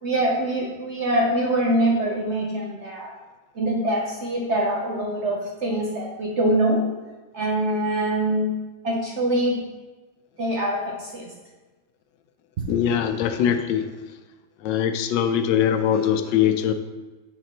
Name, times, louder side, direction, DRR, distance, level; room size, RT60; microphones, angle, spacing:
voice 1, 0.0-3.1 3.6-6.9 7.3-8.5 8.8-9.6 10.4-11.3 12.6-12.7, right 1 dB, 60° right, -1 dB, 0.8 m, -24 dB
voice 2, 12.7-13.9 14.6-16.7, left 9 dB, 85° left, 8 dB, 1.2 m, -22 dB
6.7 x 5.8 x 2.9 m, 1.2 s
omnidirectional pair, 1.9 m